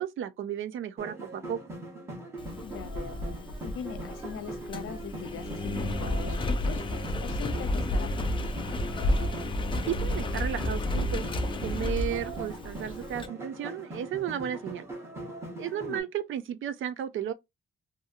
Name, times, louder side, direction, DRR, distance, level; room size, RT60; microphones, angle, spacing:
voice 1, 0.0-1.6 9.9-11.3 11.6-14.9 15.6-17.3, right 9 dB, 70° right, 0.4 m, -33 dB
sound 1, 1.0-16.0, right 1 dB, 10° right, 0.9 m, -41 dB
Engine, 2.4-13.3, left 1 dB, 25° left, 0.3 m, -31 dB
voice 2, 2.6-3.2 3.6-6.8 7.2-8.5 15.7-16.1, left 8 dB, 85° left, 0.6 m, -41 dB
2.7 x 2.7 x 2.4 m
wide cardioid pair, 170°, 21 cm